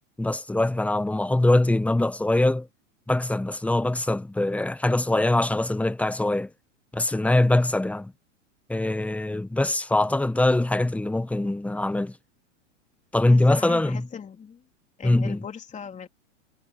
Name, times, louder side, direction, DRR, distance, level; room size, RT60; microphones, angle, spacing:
voice 1, 0.2-2.7 3.1-6.5 6.9-8.1 8.7-12.2 13.1-14.1 15.0-15.5, left 2 dB, 5° left, 1.1 m, -23 dB
voice 2, 13.3-14.6 15.0-16.1, left 7 dB, 20° left, 3.3 m, -39 dB
hypercardioid pair, 120°, 38 cm